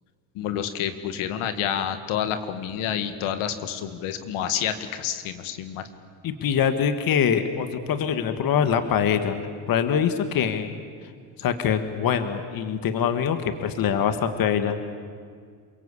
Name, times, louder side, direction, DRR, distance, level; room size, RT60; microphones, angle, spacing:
voice 1, 0.4-5.8, left 9 dB, 75° left, 9 dB, 2.1 m, -29 dB
voice 2, 6.2-9.4 9.7-10.7 11.4-14.8, left 8 dB, 45° left, 9 dB, 1.7 m, -24 dB
28.0 x 23.5 x 8.4 m, 2.1 s
cardioid pair, 150°, 50 cm